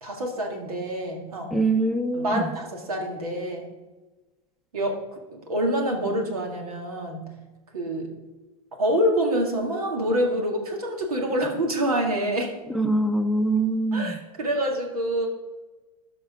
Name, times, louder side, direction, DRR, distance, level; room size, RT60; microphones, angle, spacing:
voice 1, 0.0-1.6 2.1-3.7 4.7-5.0 5.3-7.3 7.7-8.1 8.8-12.5 13.9-15.3, equal, 85° right, 2 dB, 2.1 m, -26 dB
voice 2, 1.5-2.5 12.7-14.2, right 2 dB, ahead, 8 dB, 0.7 m, -23 dB
12.5 x 5.0 x 4.9 m, 1.2 s
hypercardioid pair, 95°, 18 cm